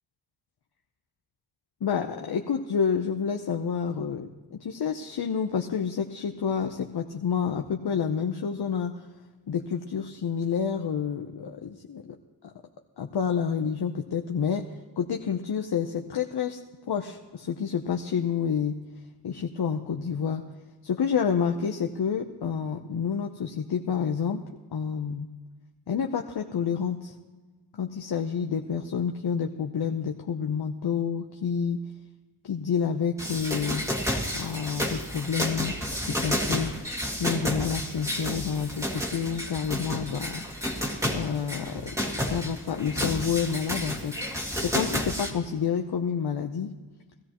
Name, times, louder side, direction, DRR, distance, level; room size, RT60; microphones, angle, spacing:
voice 1, 1.8-9.0 9.5-12.2 13.0-14.7 15.0-16.6 16.9-18.8 19.2-20.4 20.8-24.4 24.7-25.3 25.9-27.1 27.8-31.8 32.4-33.8 34.3-36.9 37.1-40.4 41.1-44.1 44.6-46.7, left 7 dB, 65° left, 3 dB, 0.8 m, -29 dB
sound 1, 33.2-45.3, equal, 5° right, 1.9 m, -31 dB
18.5 x 13.5 x 3.0 m, 1.3 s
cardioid pair, 70°, 42 cm